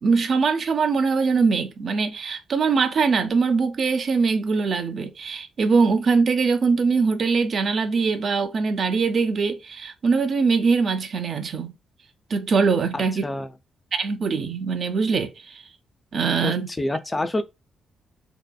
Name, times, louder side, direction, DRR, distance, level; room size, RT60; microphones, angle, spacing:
voice 1, 0.0-11.7 12.3-13.2 13.9-15.6 16.1-16.7, right 5 dB, 60° right, 0.5 m, -22 dB
voice 2, 12.9-13.5 16.4-17.4, left 2 dB, 25° left, 0.4 m, -27 dB
2.8 x 2.2 x 2.3 m
hypercardioid pair, 50°, 0 cm